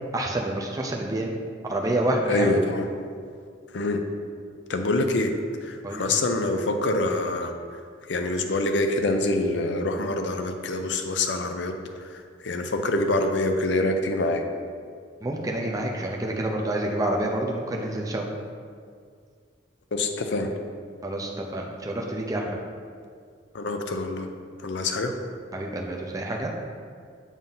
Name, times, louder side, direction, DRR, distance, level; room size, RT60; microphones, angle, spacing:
voice 1, 0.1-1.3 1.6-2.5 5.8-6.0 15.2-18.3 21.0-22.6 25.5-26.5, right 1 dB, 20° right, 0 dB, 0.5 m, -28 dB
voice 2, 2.3-2.9 3.7-4.0 4.7-5.3 5.6-7.5 8.1-11.7 12.4-14.4 19.9-20.5 23.5-24.3 24.6-25.1, left 2 dB, 65° left, 5 dB, 0.5 m, -25 dB
7.3 x 2.7 x 5.5 m, 2.1 s
head